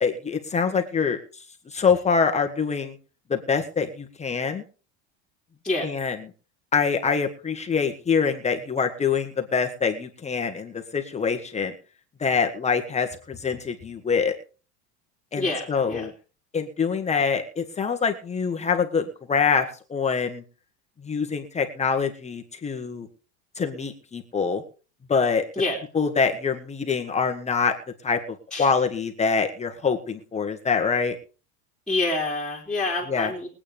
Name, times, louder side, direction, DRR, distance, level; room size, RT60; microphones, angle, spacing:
voice 1, 0.0-1.2 1.7-3.0 3.3-4.6 5.8-6.2 6.7-11.7 12.2-14.3 15.3-16.1 16.5-20.4 21.0-23.1 23.6-24.6 25.1-25.4 25.9-27.7 28.0-28.2 28.6-31.1 33.1-33.3, left 5 dB, 20° left, 5 dB, 1.5 m, -25 dB
voice 2, 15.4-16.1 25.6-25.8 28.5-28.7 31.9-33.5, left 2 dB, ahead, -4 dB, 3.1 m, -27 dB
22.5 x 8.7 x 3.5 m, 0.37 s
supercardioid pair, 130°, 34 cm